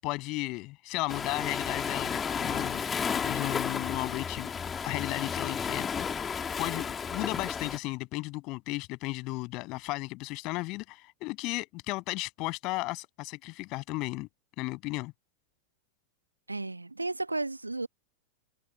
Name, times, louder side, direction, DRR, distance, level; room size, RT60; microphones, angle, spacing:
voice 1, 0.0-4.5 4.8-14.3 14.6-15.1, left 23 dB, 40° left, 7.7 m, -35 dB
Waves surf, 1.1-7.8, left 6 dB, 20° left, 2.7 m, -33 dB
voice 2, 16.5-17.9, right 2 dB, 80° right, 1.5 m, -33 dB
figure-of-eight pair, 90°, 0 cm